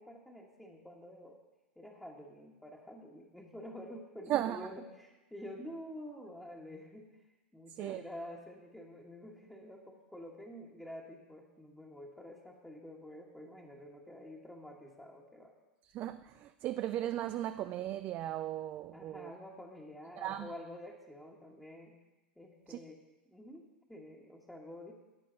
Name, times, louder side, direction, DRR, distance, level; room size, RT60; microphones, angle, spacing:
voice 1, 0.0-1.4 1.8-7.1 7.5-15.5 18.9-21.9 22.4-23.0 23.3-24.9, left 1 dB, 5° left, 1.4 m, -49 dB
voice 2, 4.3-4.7 7.8-8.0 15.9-19.3 20.2-20.5 22.7-22.8, right 12 dB, 40° right, 0.4 m, -36 dB
13.5 x 9.0 x 3.9 m
hypercardioid pair, 95°, 5 cm